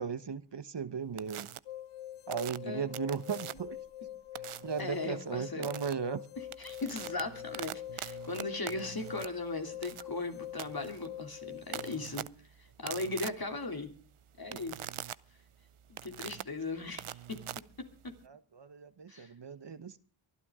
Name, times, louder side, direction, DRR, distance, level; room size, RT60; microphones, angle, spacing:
voice 1, 0.0-1.5 2.3-3.8 4.4-6.2 18.2-20.0, right 6 dB, 55° right, 1.2 m, -37 dB
sound 1, 1.2-1.6 2.3-3.8 4.4-4.8 5.6-5.9 6.4-18.3, right 11 dB, 75° right, 0.7 m, -44 dB
sound 2, 1.7-12.1, left 12 dB, 85° left, 0.7 m, -45 dB
voice 2, 4.8-5.7 6.6-12.3 12.6-13.9 14.4-14.8 15.9-17.4 17.8-18.2 19.1-19.3, left 3 dB, 45° left, 3.0 m, -38 dB
23.5 x 12.0 x 3.7 m
wide cardioid pair, 65°, 50 cm